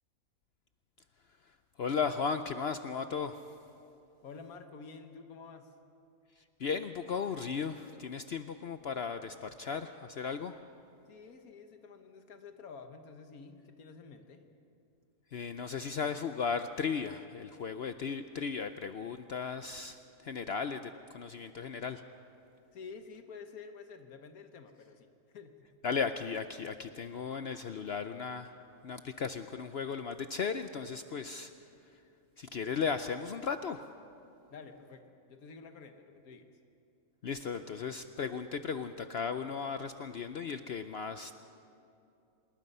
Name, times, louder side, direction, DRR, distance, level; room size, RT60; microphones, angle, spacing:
voice 1, 1.8-3.4 6.6-10.5 15.3-20.0 20.2-22.0 25.8-28.5 28.8-31.5 32.4-33.8 37.2-41.3, left 6 dB, 55° left, 9 dB, 0.8 m, -36 dB
voice 2, 4.2-5.7 11.1-14.4 22.7-25.1 25.3-25.5 34.5-36.5, left 5 dB, 85° left, 6 dB, 1.7 m, -50 dB
26.5 x 20.5 x 5.5 m, 2.6 s
omnidirectional pair, 1.5 m